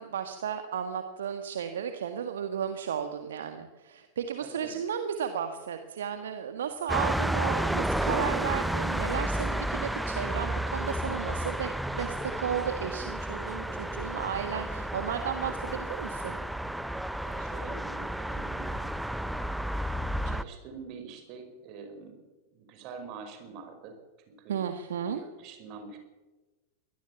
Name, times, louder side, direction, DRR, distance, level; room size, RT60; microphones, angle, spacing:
voice 1, 0.0-16.4 24.5-25.2, right 8 dB, 65° right, 7 dB, 1.7 m, -34 dB
voice 2, 4.4-4.8 17.2-18.8 20.2-22.2 22.5-24.0 24.3-24.6 25.0-26.0, right 5 dB, 40° right, 7 dB, 5.3 m, -45 dB
sound 1, 6.9-20.4, right 1 dB, 5° right, 1.0 m, -32 dB
23.5 x 18.0 x 7.2 m, 1.2 s
figure-of-eight pair, 90°, 0 cm